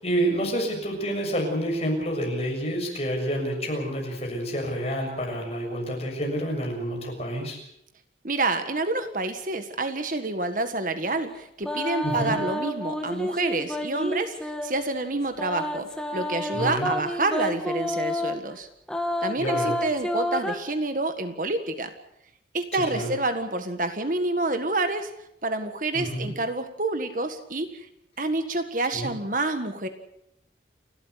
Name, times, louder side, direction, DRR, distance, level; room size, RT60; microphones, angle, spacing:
voice 1, 0.0-7.6 12.0-12.4 16.5-16.9 19.4-19.8 22.7-23.1 25.9-26.3 28.9-29.1, right 1 dB, 35° left, 1 dB, 6.9 m, -28 dB
voice 2, 8.2-18.7 19.2-21.9 22.5-25.1 25.4-27.9 28.2-29.9, right 2 dB, 45° right, 8 dB, 1.6 m, -28 dB
sound 1, 11.6-14.7 15.4-18.4 18.9-20.6, left 1 dB, 5° left, 1.8 m, -29 dB
30.0 x 13.0 x 8.1 m, 0.78 s
head